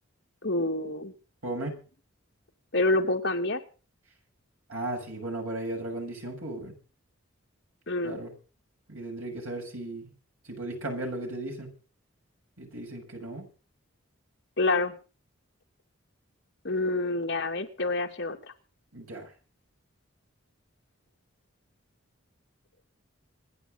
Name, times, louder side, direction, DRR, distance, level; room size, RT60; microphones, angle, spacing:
voice 1, 0.4-1.1 2.7-3.6 7.9-8.2 14.6-14.9 16.6-18.5, left 2 dB, 55° left, 3 dB, 2.5 m, -27 dB
voice 2, 1.4-1.8 4.7-6.8 8.0-8.3 8.9-10.1 10.5-11.7 12.6-13.5 18.9-19.3, right 1 dB, 85° right, 2 dB, 7.0 m, -36 dB
26.0 x 10.5 x 3.9 m, 0.37 s
head